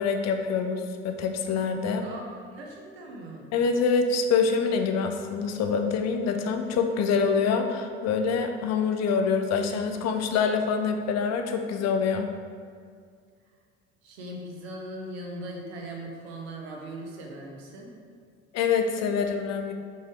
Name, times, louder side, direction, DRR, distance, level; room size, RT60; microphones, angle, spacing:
voice 1, 0.0-2.0 3.5-12.3 18.5-19.7, left 5 dB, 55° left, 6 dB, 0.7 m, -25 dB
voice 2, 2.0-3.5 14.0-17.9, right 1 dB, 85° right, 0 dB, 1.1 m, -39 dB
6.3 x 4.3 x 3.6 m, 2.2 s
hypercardioid pair, 70°, 31 cm